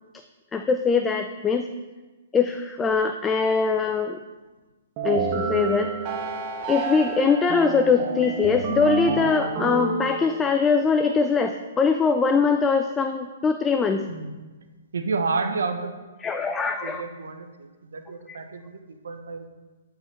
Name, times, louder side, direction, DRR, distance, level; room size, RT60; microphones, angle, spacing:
voice 1, 0.5-1.7 2.3-4.2 5.0-5.9 6.7-14.0 16.2-17.0 18.3-18.4, left 5 dB, 15° left, 6 dB, 0.3 m, -22 dB
sound 1, 5.0-10.7, right 3 dB, 35° right, 0.7 m, -29 dB
voice 2, 14.9-15.9 16.8-19.5, right 4 dB, 80° right, 7 dB, 0.7 m, -30 dB
9.5 x 4.7 x 3.3 m, 1.2 s
hypercardioid pair, 140°, 0 cm